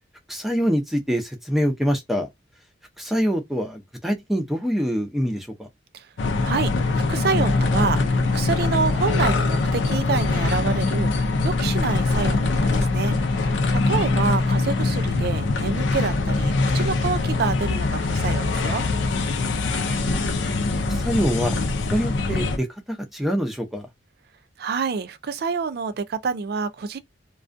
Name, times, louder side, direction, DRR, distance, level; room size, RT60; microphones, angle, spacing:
voice 1, 0.3-2.3 3.0-5.7 13.9-14.2 19.8-20.3 20.9-21.6 21.9-23.9, equal, ahead, 0.5 m, -25 dB
sound 1, 6.2-22.6, left 3 dB, 75° left, 0.5 m, -23 dB
voice 2, 6.4-18.8 24.6-27.0, right 5 dB, 55° right, 0.4 m, -27 dB
2.3 x 2.3 x 2.5 m
head